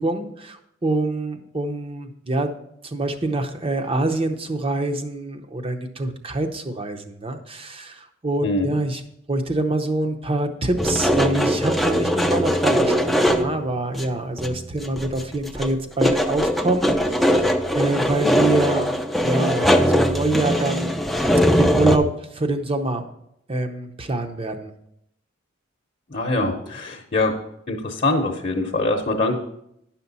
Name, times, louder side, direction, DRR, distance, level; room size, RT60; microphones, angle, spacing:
voice 1, 0.0-2.5 2.8-9.0 9.3-18.9 19.2-21.0 21.6-23.0 23.5-24.7, right 2 dB, 30° right, 6 dB, 0.7 m, -25 dB
sound 1, 10.8-13.6 13.9-14.0 14.4-15.2 15.5-22.0, equal, ahead, 0.4 m, -20 dB
voice 2, 26.1-27.3 27.7-29.4, left 2 dB, 40° left, 0 dB, 0.8 m, -23 dB
10.5 x 5.8 x 4.1 m, 0.77 s
head